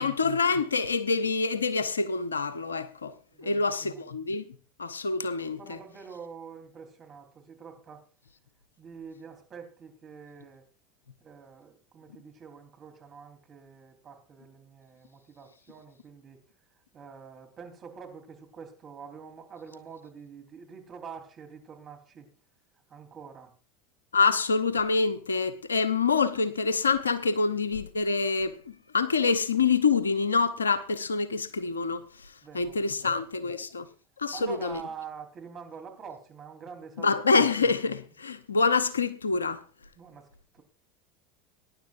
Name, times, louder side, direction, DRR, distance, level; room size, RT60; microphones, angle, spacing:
voice 1, 0.0-3.1 3.4-4.5 4.8-5.8 24.1-32.0 32.5-33.9 34.2-34.8 37.0-39.6, left 4 dB, 85° left, 0.7 m, -26 dB
voice 2, 3.3-4.0 5.6-8.0 8.8-10.7 11.2-16.4 16.9-22.3 22.9-23.5 32.4-33.3 34.3-37.4 40.0-40.3 40.5-40.6, right 6 dB, 35° right, 3.6 m, -46 dB
22.0 x 10.5 x 2.6 m
hypercardioid pair, 80°, 0 cm